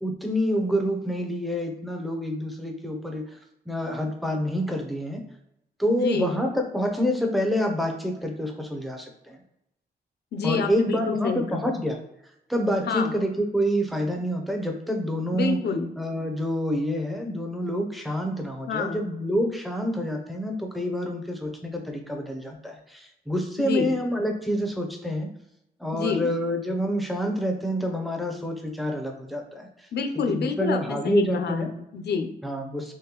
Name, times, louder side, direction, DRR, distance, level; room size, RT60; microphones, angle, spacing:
voice 1, 0.0-3.2 3.7-5.2 5.8-9.4 10.4-12.0 12.5-15.6 16.0-25.3 25.8-29.7 30.3-31.7 32.4-32.9, equal, ahead, 2 dB, 0.6 m, -27 dB
voice 2, 5.9-6.4 10.3-11.7 12.9-13.1 15.3-15.9 18.7-19.0 23.6-23.9 25.9-26.3 29.9-32.3, left 5 dB, 70° left, 6 dB, 0.6 m, -28 dB
3.7 x 3.1 x 3.0 m, 0.84 s
wide cardioid pair, 135°, 18 cm